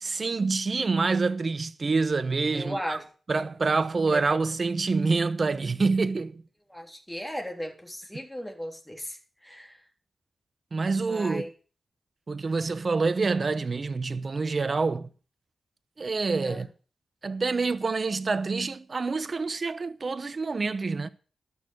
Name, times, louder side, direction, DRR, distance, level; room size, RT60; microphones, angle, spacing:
voice 1, 0.0-3.0 3.3-6.4 10.7-11.4 12.3-15.1 16.0-16.7 17.2-21.1, right 4 dB, 50° right, 0.9 m, -27 dB
voice 2, 2.5-3.1 4.1-4.2 6.7-9.8 11.1-11.5 16.4-16.6, equal, 5° left, 3.5 m, -36 dB
12.5 x 6.5 x 8.0 m
cardioid pair, 60°, 0 cm